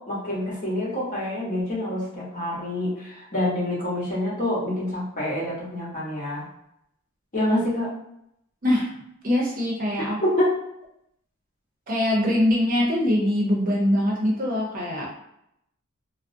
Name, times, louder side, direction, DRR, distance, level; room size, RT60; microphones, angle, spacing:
voice 1, 0.1-6.5 7.3-7.9 10.4-10.5, left 1 dB, 40° left, -6 dB, 0.9 m, -27 dB
voice 2, 9.2-10.2 11.9-15.1, left 1 dB, 40° right, -3 dB, 0.6 m, -23 dB
2.4 x 2.0 x 2.5 m, 0.77 s
head